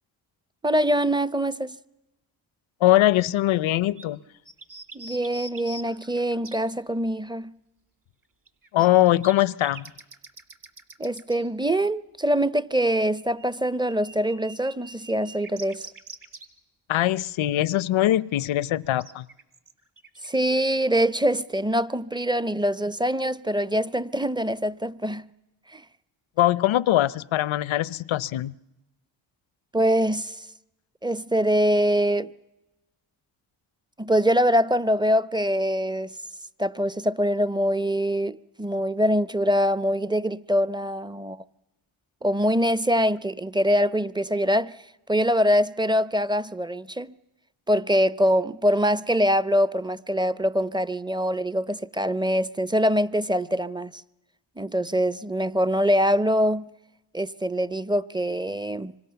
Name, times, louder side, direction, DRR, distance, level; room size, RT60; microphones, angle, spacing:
voice 1, 0.6-1.8 4.9-7.5 11.0-15.9 20.2-25.3 25.7-25.8 29.7-30.5 31.0-32.3 34.0-36.1 36.6-41.4 42.2-44.8 45.1-47.1 47.7-54.0 54.6-56.7 57.1-58.9, equal, 10° right, 0.8 m, -24 dB
voice 2, 2.8-4.2 8.7-9.9 16.9-19.2 26.4-28.6, left 14 dB, 75° left, 0.8 m, -22 dB
sound 1, 3.2-3.3 3.7-3.8 4.0-4.1 4.4-6.6 8.5-11.5 12.9-16.5 19.0-20.4, right 2 dB, 40° right, 2.5 m, -44 dB
26.0 x 25.0 x 7.0 m
cardioid pair, 60°, 48 cm